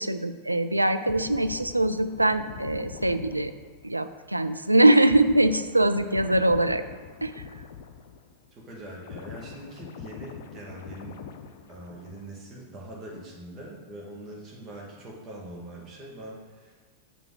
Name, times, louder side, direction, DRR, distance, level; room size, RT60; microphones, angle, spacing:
voice 1, 0.0-3.5 3.8-6.8 7.2-7.3, right 1 dB, 85° right, 10 dB, 0.3 m, -22 dB
sound 1, 1.0-8.5 8.8-12.5 12.8-13.0, left 7 dB, 55° left, 0.6 m, -43 dB
voice 2, 8.5-16.8, right 1 dB, 25° right, -3 dB, 1.9 m, -43 dB
7.0 x 5.8 x 4.0 m, 1.3 s
figure-of-eight pair, 90°, 0 cm